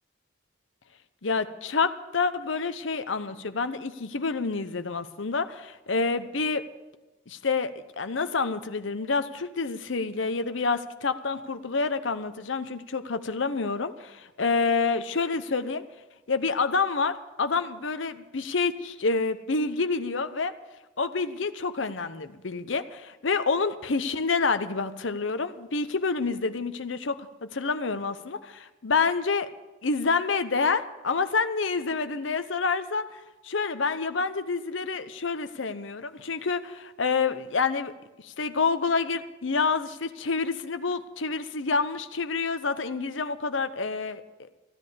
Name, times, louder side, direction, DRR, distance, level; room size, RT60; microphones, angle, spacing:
voice 1, 1.2-6.7 7.3-15.8 16.3-20.5 21.0-29.5 29.8-37.9 38.2-44.2, left 4 dB, 75° left, 11 dB, 0.8 m, -28 dB
15.5 x 11.0 x 6.9 m, 1.1 s
head